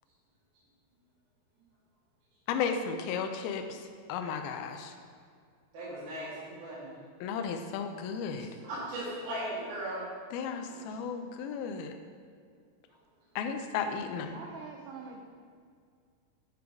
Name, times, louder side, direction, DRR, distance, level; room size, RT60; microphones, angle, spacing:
voice 1, 2.5-3.8 4.1-4.9 7.2-8.5 10.3-12.0 13.4-14.4, left 6 dB, 85° left, 6 dB, 2.2 m, -34 dB
voice 2, 5.7-7.0 8.6-10.0 10.7-10.8, right 1 dB, 55° right, -11 dB, 3.4 m, -37 dB
voice 3, 14.3-15.2, right 4 dB, 85° right, 0 dB, 2.1 m, -44 dB
9.5 x 5.1 x 4.7 m, 2.2 s
omnidirectional pair, 5.0 m